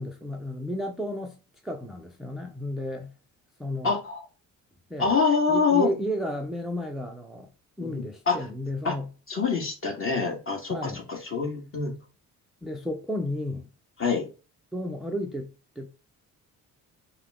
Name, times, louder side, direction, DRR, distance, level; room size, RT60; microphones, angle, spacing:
voice 1, 0.0-1.4 1.6-3.1 3.6-4.0 4.9-5.1 5.5-7.5 7.8-9.1 10.7-11.1 12.6-13.7 14.7-15.9, equal, ahead, 0.5 m, -32 dB
voice 2, 3.8-4.2 5.0-5.9 7.8-8.4 8.8-8.9 9.3-11.9 14.0-14.3, left 5 dB, 35° left, 1.8 m, -25 dB
5.6 x 2.2 x 3.6 m
cardioid pair, 120°, 35 cm